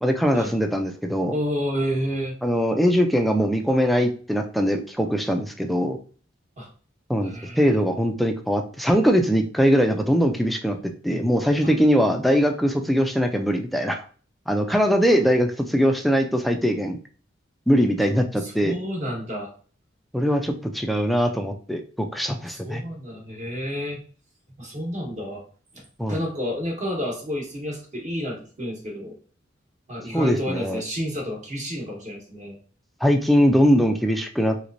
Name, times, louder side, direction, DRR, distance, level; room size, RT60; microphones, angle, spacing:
voice 1, 0.0-1.4 2.4-6.0 7.1-7.3 7.6-14.0 14.5-17.0 17.7-18.8 20.1-22.8 26.0-26.2 30.1-30.8 33.0-34.6, equal, ahead, 4 dB, 0.3 m, -21 dB
voice 2, 1.3-2.3 6.6-6.7 7.2-7.8 11.6-11.7 14.7-14.8 18.4-19.5 21.2-21.3 22.5-24.0 24.6-25.4 25.7-25.8 26.1-29.2 29.9-32.6, equal, 40° right, -1 dB, 1.0 m, -30 dB
3.2 x 3.1 x 2.5 m, 0.41 s
head